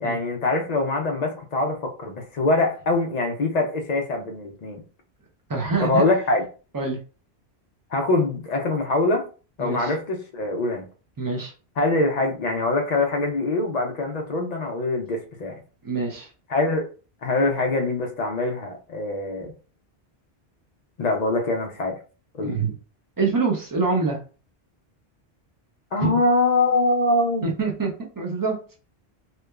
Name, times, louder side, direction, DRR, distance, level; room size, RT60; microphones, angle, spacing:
voice 1, 0.0-4.8 5.8-6.4 7.9-9.2 9.6-10.9 11.8-15.6 16.5-16.8 17.2-19.5 21.0-22.0 22.3-22.6 25.9-27.5, left 2 dB, 55° left, 0.5 m, -23 dB
voice 2, 5.5-6.1 6.7-7.0 9.6-9.9 11.2-11.5 15.8-16.3 22.4-22.7 23.2-24.2 26.0-26.2 27.4-28.6, right 4 dB, 30° right, 0.4 m, -25 dB
2.9 x 2.2 x 2.3 m
omnidirectional pair, 1.1 m